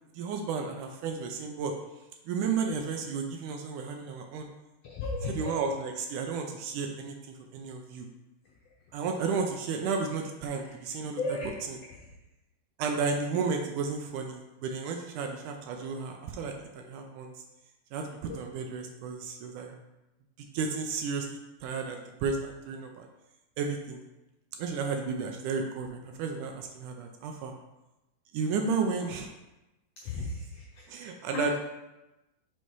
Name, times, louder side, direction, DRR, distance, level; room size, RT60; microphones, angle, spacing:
voice 1, 0.2-1.7 2.3-4.5 5.3-8.1 8.9-11.2 11.7-11.8 12.8-17.3 17.9-19.7 20.5-21.3 21.6-23.1 23.6-24.0 24.6-27.5 28.3-29.3 30.9-31.6, right 5 dB, 80° right, 4 dB, 1.9 m, -33 dB
voice 2, 4.8-5.5 10.6-10.7 11.2-11.5 11.9-12.0 18.3-18.4 30.0-31.6, left 3 dB, 80° left, -3 dB, 1.4 m, -35 dB
5.5 x 4.5 x 4.6 m, 0.99 s
omnidirectional pair, 3.9 m